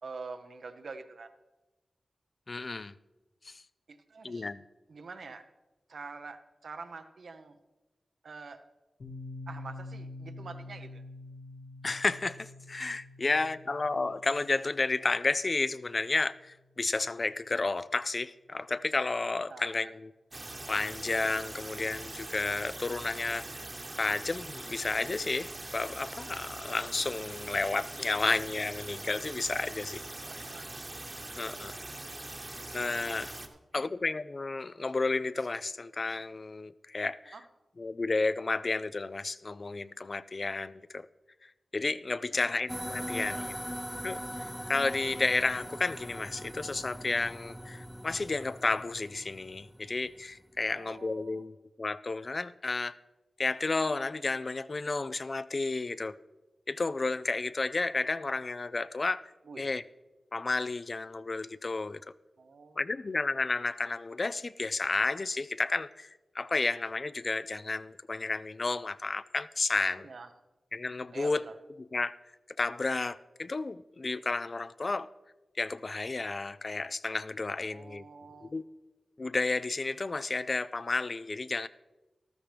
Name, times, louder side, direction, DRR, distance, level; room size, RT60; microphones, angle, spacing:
voice 1, 0.0-1.3 3.9-4.5 4.9-5.4 5.9-7.6 8.2-8.6 9.5-11.0 19.5-19.9 30.1-30.7 33.7-33.9 37.3-37.4 42.3-42.4 43.2-43.5 50.7-51.4 59.5-59.7 62.4-62.8 70.0-70.3 71.1-71.5 77.7-78.5, right 4 dB, 75° right, 0.8 m, -46 dB
voice 2, 2.5-2.9 3.4-3.6 4.2-4.6 11.8-20.1 20.7-23.5 24.0-30.0 31.4-31.8 32.7-33.3 33.7-37.4 37.8-41.1 41.7-43.5 44.0-52.9 53.4-56.1 56.7-59.2 59.6-59.8 60.3-62.0 62.8-70.1 70.7-71.4 71.8-72.1 72.6-75.1 75.6-78.0 78.4-78.7 79.2-81.7, left 3 dB, 50° left, 0.4 m, -32 dB
Piano, 9.0-16.4, left 2 dB, 85° left, 2.4 m, -47 dB
sound 1, 20.3-33.5, right 2 dB, 40° right, 1.2 m, -42 dB
sound 2, 42.7-50.3, equal, 5° left, 0.6 m, -41 dB
13.0 x 13.0 x 3.4 m
cardioid pair, 40°, 0 cm